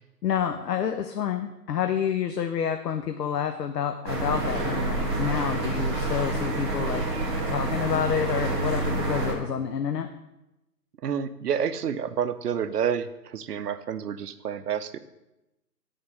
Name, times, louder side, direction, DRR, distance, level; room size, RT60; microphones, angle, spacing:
voice 1, 0.2-7.1 7.5-10.1, left 8 dB, 85° left, 7 dB, 0.7 m, -28 dB
sound 1, 4.0-9.3, right 2 dB, 15° right, 0.8 m, -28 dB
voice 2, 11.0-15.0, right 8 dB, 75° right, 12 dB, 0.7 m, -29 dB
7.9 x 3.7 x 5.3 m, 0.93 s
hypercardioid pair, 160°, 48 cm